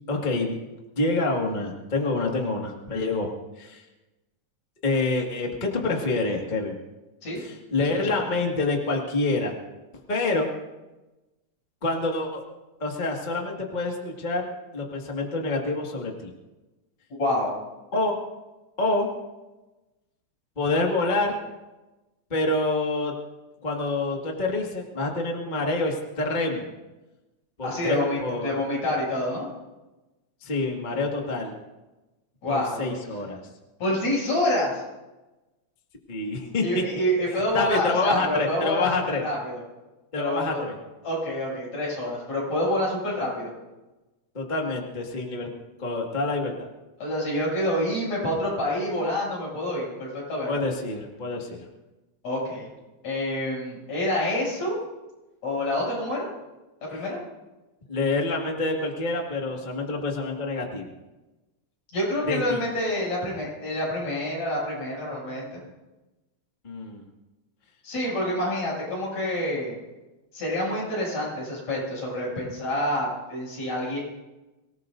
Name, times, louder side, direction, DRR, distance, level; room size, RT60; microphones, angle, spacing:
voice 1, 0.1-0.5 0.9-3.3 3.6-3.8 4.8-6.7 7.3-9.5 10.1-10.5 11.8-12.4 12.8-14.5 14.7-16.3 17.9-18.1 18.8-19.1 20.6-21.4 22.3-23.1 23.6-26.7 27.6-28.5 30.4-31.5 32.5-33.4 36.1-36.8 37.5-39.3 40.1-40.7 44.3-45.5 45.8-46.5 50.4-51.7 57.9-60.9 62.3-62.6 66.6-67.0, left 2 dB, 20° left, 0 dB, 1.6 m, -27 dB
voice 2, 7.8-8.1 17.2-17.5 27.6-29.5 32.4-33.0 33.8-34.8 36.6-39.6 40.2-40.6 41.0-43.5 47.0-50.5 52.2-52.7 53.0-54.8 55.4-56.3 56.8-57.2 61.9-65.6 67.8-69.8 70.3-74.0, left 1 dB, 70° left, -4 dB, 8.6 m, -27 dB
24.5 x 18.0 x 2.7 m, 1.1 s
omnidirectional pair, 3.3 m